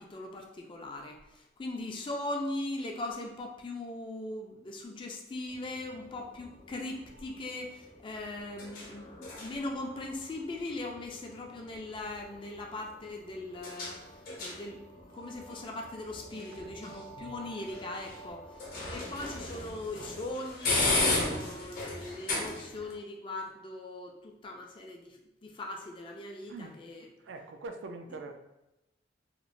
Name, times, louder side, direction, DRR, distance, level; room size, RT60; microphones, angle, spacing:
voice 1, 0.0-27.1, left 2 dB, 25° left, 1 dB, 0.3 m, -40 dB
sound 1, 5.5-22.9, left 2 dB, 50° left, 0.7 m, -37 dB
voice 2, 16.3-16.8 26.5-26.8 27.2-28.3, right 3 dB, 80° right, 5 dB, 0.3 m, -44 dB
2.9 x 2.1 x 2.5 m, 0.92 s
head